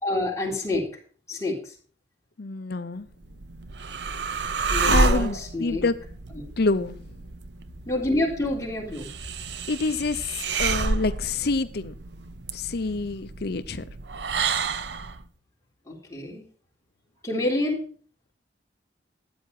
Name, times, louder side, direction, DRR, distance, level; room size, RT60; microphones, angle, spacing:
voice 1, 0.0-0.9 1.3-1.7 4.7-5.8 6.3-6.5 7.9-9.1 15.9-16.5 17.2-17.8, left 2 dB, 15° left, -3 dB, 3.9 m, -28 dB
voice 2, 2.4-3.1 4.9-5.9 6.6-7.0 9.7-11.9 12.5-13.8, left 3 dB, 60° left, 12 dB, 0.7 m, -27 dB
sound 1, 3.1-15.2, right 4 dB, 70° right, 0.8 m, -29 dB
13.0 x 9.4 x 4.8 m, 0.44 s
head